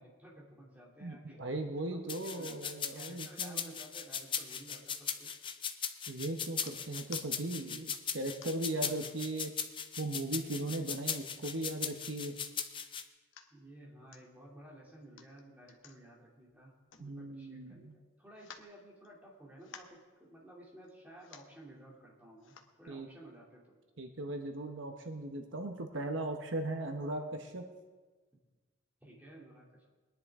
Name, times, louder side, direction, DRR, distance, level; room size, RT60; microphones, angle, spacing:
voice 1, 0.0-1.5 1.9-5.3 8.7-9.1 13.5-23.8 25.9-26.2 29.0-29.8, right 1 dB, 10° right, -4 dB, 2.8 m, -54 dB
voice 2, 1.0-3.7 6.1-9.5 10.0-12.4 17.0-18.0 22.9-23.1 24.0-27.6, right 2 dB, 65° right, 4 dB, 1.0 m, -38 dB
sound 1, 2.1-13.0, left 7 dB, 25° left, 0.6 m, -38 dB
sound 2, 6.6-7.3 7.9-8.8 9.3-9.4 9.8-10.4 11.0-11.7 12.1-12.2 12.4-12.8 13.1-13.5 14.1-14.2 15.0-17.5 17.8-17.9 18.3-19.3 19.6-20.0 20.8-20.9 21.2-21.6 22.4-22.7 23.3-23.4, left 7 dB, 70° left, 1.0 m, -54 dB
21.5 x 10.5 x 3.7 m, 1.3 s
head